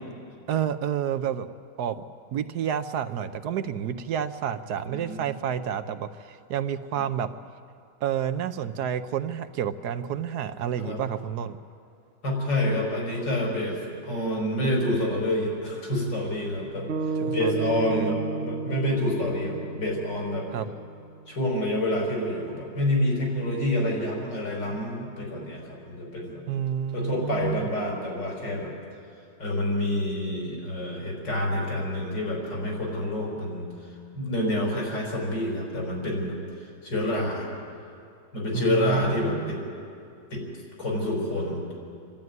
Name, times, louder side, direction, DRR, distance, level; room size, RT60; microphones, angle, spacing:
voice 1, 0.5-1.5 1.8-2.0 2.3-7.3 8.0-11.6 17.2-18.1 20.5-20.7 26.5-27.6 38.5-39.5, right 9 dB, 70° right, 10 dB, 1.2 m, -29 dB
voice 2, 4.9-5.2 6.9-7.0 10.8-11.0 12.2-20.5 21.3-26.4 26.9-28.7 29.4-37.5 38.3-39.6 40.3-40.4 40.8-41.6, left 1 dB, 85° left, -1 dB, 5.7 m, -28 dB
sound 1, 16.9-21.3, right 3 dB, 50° right, 0.9 m, -32 dB
26.5 x 12.0 x 9.4 m, 2.5 s
omnidirectional pair, 1.9 m